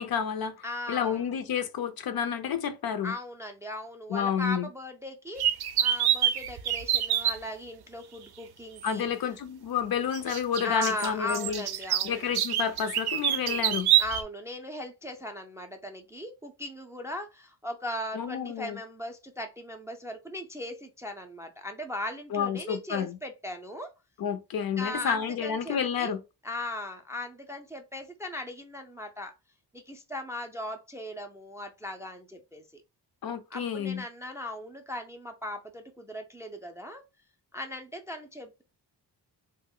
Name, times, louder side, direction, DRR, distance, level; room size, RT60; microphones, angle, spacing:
voice 1, 0.0-0.5 0.9-3.1 4.1-4.7 8.8-11.6 12.0-13.9 18.1-18.8 22.3-23.2 24.2-26.2 33.2-34.0, left 7 dB, 55° left, 0.5 m, -30 dB
voice 2, 0.6-1.2 3.0-9.1 10.6-12.2 13.3-13.7 14.0-23.9 24.8-26.2 26.4-29.3 29.7-32.6 33.5-37.0 37.5-38.6, left 1 dB, 5° right, 0.4 m, -38 dB
sound 1, 5.4-7.4 8.8-8.9 10.1-14.2, right 11 dB, 65° right, 0.5 m, -26 dB
2.5 x 2.1 x 3.6 m
cardioid pair, 95°, 42 cm